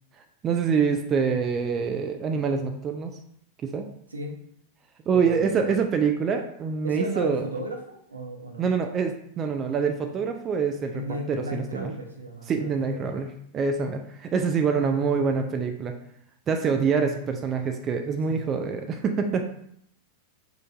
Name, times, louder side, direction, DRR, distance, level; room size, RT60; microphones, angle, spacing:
voice 1, 0.4-3.2 3.6-3.9 5.1-7.4 8.6-11.0 11.3-11.9 12.5-15.9 16.5-19.5, right 5 dB, 25° right, 5 dB, 0.3 m, -25 dB
voice 2, 5.1-5.8 6.8-8.7 10.9-13.1 14.6-15.0 16.9-17.1 18.3-18.5, right 1 dB, 80° right, 1 dB, 0.6 m, -35 dB
4.4 x 2.5 x 2.4 m, 0.70 s
figure-of-eight pair, 90°, 0 cm